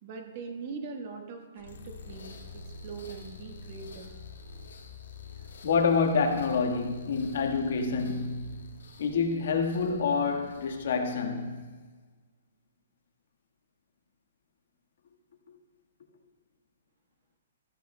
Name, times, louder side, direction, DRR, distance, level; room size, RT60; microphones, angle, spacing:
voice 1, 0.0-4.1, right 4 dB, 35° right, 1.3 m, -42 dB
sound 1, 1.6-11.6, left 3 dB, 85° left, 2.0 m, -47 dB
voice 2, 5.6-8.6 9.0-11.6 15.5-15.6, left 5 dB, 60° left, 1.5 m, -27 dB
14.5 x 14.0 x 2.2 m
hypercardioid pair, 165°, 0 cm